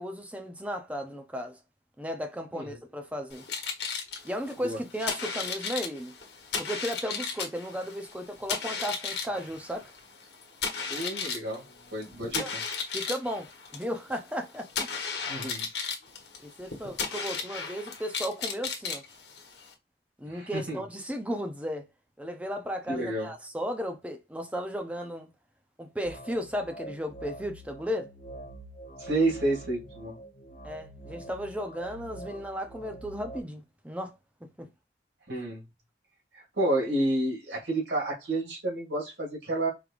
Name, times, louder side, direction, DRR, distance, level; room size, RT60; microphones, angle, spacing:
voice 1, 0.0-1.6 2.0-3.4 4.2-6.1 6.6-9.9 12.4-12.5 12.9-14.7 16.4-19.0 20.2-21.9 22.2-25.3 25.8-28.1 30.6-34.1 34.4-34.7, equal, 10° right, 0.6 m, -35 dB
sound 1, 3.3-19.7, left 5 dB, 75° left, 1.2 m, -35 dB
voice 2, 10.9-11.6 11.9-12.6 15.3-15.7 20.3-20.8 22.9-23.3 29.0-30.2 35.3-35.6 36.3-39.7, right 2 dB, 85° right, 2.3 m, -30 dB
sound 2, 26.0-33.4, right 1 dB, 50° left, 1.0 m, -45 dB
4.7 x 3.3 x 2.5 m
head